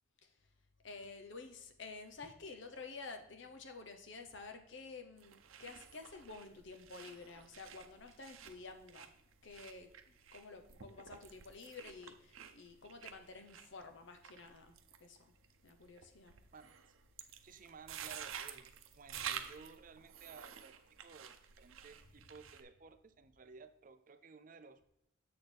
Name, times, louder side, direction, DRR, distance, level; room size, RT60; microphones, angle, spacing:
voice 1, 0.8-9.1 9.4-14.7 15.0-15.3 15.6-16.3, left 4 dB, 65° left, 6 dB, 0.9 m, -51 dB
sound 1, 5.2-22.6, right 8 dB, 85° right, 0.7 m, -51 dB
voice 2, 17.4-20.8 21.0-24.9, right 4 dB, 40° right, 10 dB, 0.5 m, -56 dB
7.8 x 6.5 x 3.4 m, 0.77 s
head